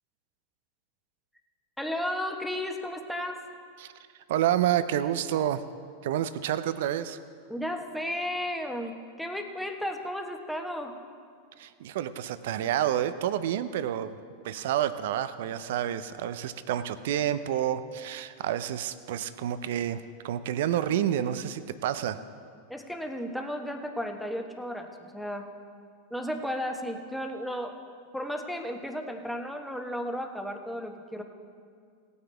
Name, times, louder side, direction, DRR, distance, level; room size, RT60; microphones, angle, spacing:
voice 1, 1.8-3.4 7.5-10.9 22.7-25.5 26.1-27.7 28.1-31.2, equal, ahead, 3 dB, 1.2 m, -34 dB
voice 2, 4.3-5.6 6.0-7.2 11.6-14.2 14.4-22.2, right 11 dB, 65° right, 13 dB, 0.5 m, -29 dB
17.5 x 9.4 x 3.4 m, 2.2 s
hypercardioid pair, 95°, 0 cm